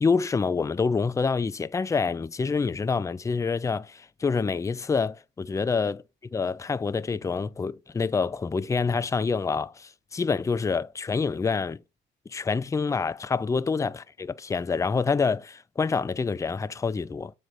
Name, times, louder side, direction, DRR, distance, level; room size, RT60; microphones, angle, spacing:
voice 1, 0.0-6.0 6.3-11.8 12.3-17.3, left 5 dB, 15° left, 0.4 m, -27 dB
7.6 x 3.2 x 5.2 m
cardioid pair, 90°, 20 cm